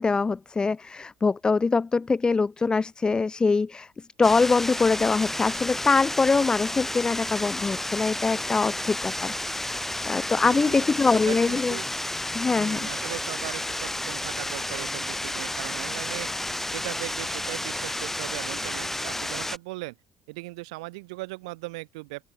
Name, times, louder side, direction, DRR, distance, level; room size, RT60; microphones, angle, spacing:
voice 1, 0.0-3.9 4.2-11.8 12.3-12.9, left 4 dB, 25° left, 0.4 m, -23 dB
sound 1, 4.2-19.6, left 1 dB, 10° left, 3.3 m, -31 dB
voice 2, 10.4-10.9 11.1-11.9 12.4-16.3 16.7-20.0 20.3-22.2, right 24 dB, 85° right, 1.3 m, -38 dB
open air
hypercardioid pair, 65°, 3 cm